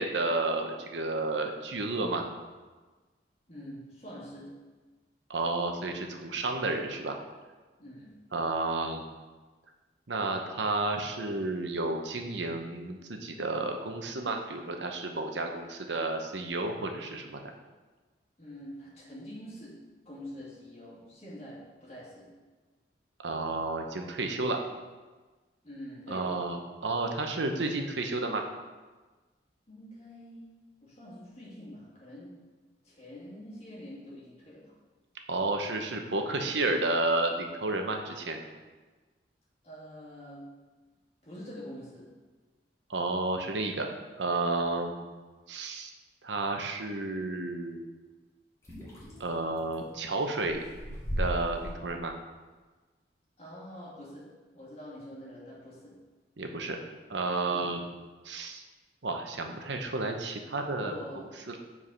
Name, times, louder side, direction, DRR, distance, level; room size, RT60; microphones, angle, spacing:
voice 1, 0.0-2.3 5.3-7.2 8.3-9.0 10.1-17.4 23.2-24.6 26.1-28.5 35.3-38.4 42.9-43.9 44.2-44.9 45.5-45.9 46.2-47.8 49.2-50.6 51.2-52.1 56.4-56.8 57.1-57.8 58.2-58.6 59.0-61.0 61.5-61.6, right 2 dB, 80° right, 4 dB, 0.9 m, -31 dB
voice 2, 3.5-4.6 7.8-8.2 18.4-22.5 25.6-26.3 29.7-30.5 30.8-32.4 32.8-34.8 39.6-40.6 41.2-42.2 53.4-56.0 57.5-57.7 60.8-61.6, equal, 35° left, -6 dB, 2.3 m, -46 dB
sound 1, 48.6-49.7 50.3-51.7, equal, 15° left, 2.1 m, -36 dB
7.4 x 4.8 x 5.6 m, 1.3 s
head